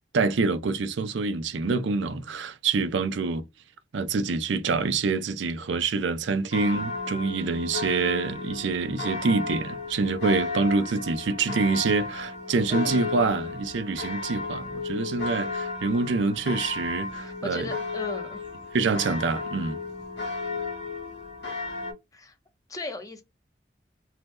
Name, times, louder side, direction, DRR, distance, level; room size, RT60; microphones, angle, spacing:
voice 1, 0.1-3.4 3.9-17.7 18.7-19.8, right 4 dB, 80° right, 0.4 m, -26 dB
sound 1, 6.5-21.9, left 3 dB, 65° left, 0.9 m, -34 dB
voice 2, 12.7-13.3 17.2-18.4 22.1-22.4 22.7-23.2, left 2 dB, 20° left, 0.5 m, -37 dB
2.8 x 2.0 x 3.4 m
head